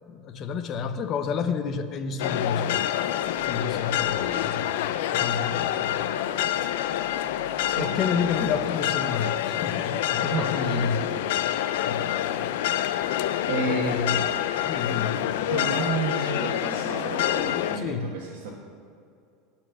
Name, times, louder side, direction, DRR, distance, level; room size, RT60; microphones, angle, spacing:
voice 1, 0.1-2.9 3.5-6.1 7.8-11.0 11.4-11.5 11.8-12.5 13.6-14.3 14.7-15.4 17.8-18.1, left 6 dB, 35° left, 9 dB, 0.6 m, -30 dB
sound 1, 2.2-17.8, left 12 dB, 80° left, 0.4 m, -27 dB
voice 2, 7.7-8.3 10.2-11.3 13.5-14.1 15.5-18.5, right 3 dB, 75° right, -4 dB, 1.4 m, -31 dB
12.5 x 4.4 x 6.9 m, 2.4 s
supercardioid pair, 150°, 0 cm